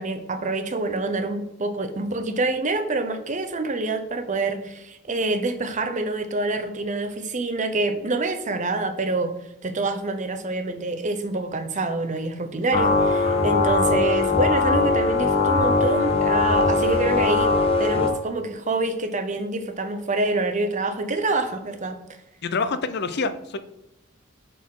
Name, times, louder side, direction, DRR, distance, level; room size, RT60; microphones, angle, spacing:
voice 1, 0.0-9.3 9.6-17.5 17.8-22.0, right 2 dB, 35° right, 8 dB, 0.7 m, -26 dB
sound 1, 12.7-18.1, left 3 dB, 25° left, 0.9 m, -20 dB
voice 2, 22.4-23.6, left 4 dB, 50° left, 11 dB, 0.6 m, -26 dB
10.5 x 4.1 x 3.8 m, 0.85 s
head